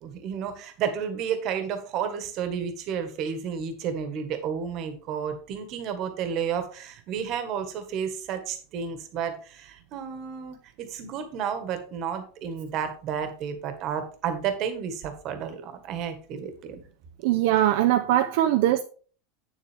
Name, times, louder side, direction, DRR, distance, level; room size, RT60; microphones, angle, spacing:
voice 1, 0.0-16.8, right 7 dB, 35° right, 1.5 m, -31 dB
voice 2, 17.2-18.8, right 13 dB, 60° right, 0.6 m, -21 dB
8.5 x 7.2 x 3.5 m
supercardioid pair, 170°, 0 cm